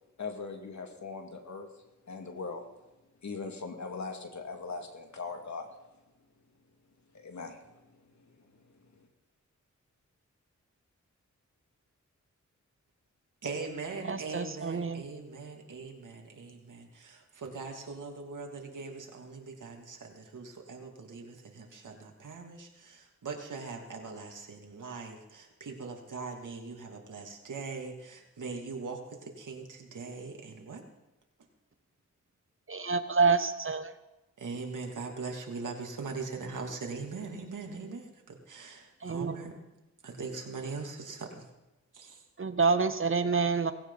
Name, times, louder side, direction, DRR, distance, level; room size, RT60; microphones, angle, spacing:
voice 1, 0.2-1.7 2.1-2.6 3.2-5.7 7.1-8.3 9.0-9.1, left 4 dB, 65° left, 4 dB, 2.5 m, -40 dB
voice 2, 13.4-30.8 34.4-39.6 40.0-41.4 41.9-42.2, right 4 dB, 80° right, 1 dB, 2.9 m, -41 dB
voice 3, 14.0-15.0 32.7-33.9 39.0-39.5 42.4-43.7, right 4 dB, 40° right, 11 dB, 1.0 m, -28 dB
18.5 x 16.5 x 4.2 m, 1.0 s
cardioid pair, 70°, 31 cm